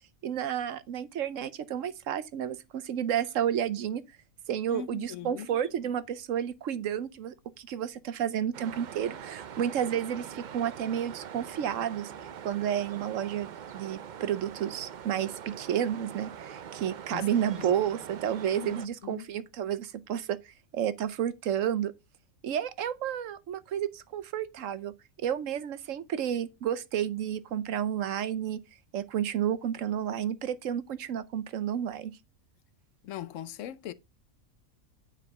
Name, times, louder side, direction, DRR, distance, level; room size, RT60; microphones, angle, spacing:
voice 1, 0.2-4.0 4.5-12.1 12.4-13.5 13.7-21.9 22.4-24.9 25.2-28.6 28.9-32.1, right 9 dB, 65° right, 1.0 m, -31 dB
voice 2, 4.7-5.6 17.1-17.3 17.6-17.7 18.5-18.7 19.0-19.3 33.0-33.9, left 9 dB, 65° left, 1.0 m, -40 dB
sound 1, 8.5-18.9, right 8 dB, 85° right, 0.4 m, -43 dB
9.3 x 4.9 x 5.2 m
omnidirectional pair, 1.5 m